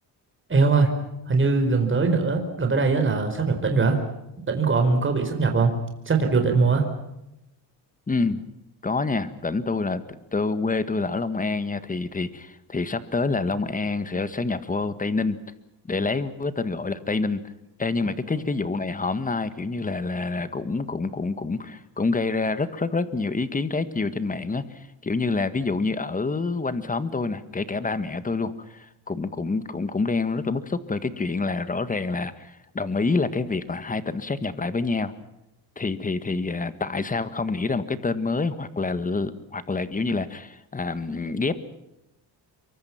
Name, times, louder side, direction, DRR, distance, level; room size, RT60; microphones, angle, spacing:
voice 1, 0.5-4.0 4.5-5.7 6.1-6.9, right 4 dB, 30° right, 5 dB, 4.4 m, -21 dB
voice 2, 8.1-8.4 8.8-15.4 15.9-17.4 17.8-35.1 35.8-41.5, left 3 dB, 20° left, 12 dB, 1.6 m, -27 dB
26.5 x 23.5 x 5.9 m, 0.88 s
cardioid pair, 130°, 41 cm